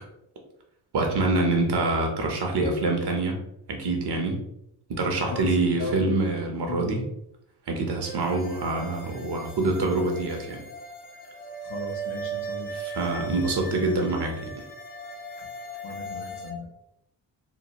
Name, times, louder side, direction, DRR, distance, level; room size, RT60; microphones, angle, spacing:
voice 1, 0.9-3.4 3.7-4.4 4.9-7.0 7.7-10.6 12.7-14.5, right 2 dB, 60° right, 2 dB, 0.9 m, -25 dB
voice 2, 5.2-6.0 6.7-7.1 11.6-12.7 15.8-16.7, left 3 dB, 70° left, 1 dB, 0.9 m, -36 dB
sound 1, 8.0-16.5, right 3 dB, 20° left, 0.5 m, -38 dB
3.0 x 2.1 x 2.9 m, 0.79 s
cardioid pair, 65°, 45 cm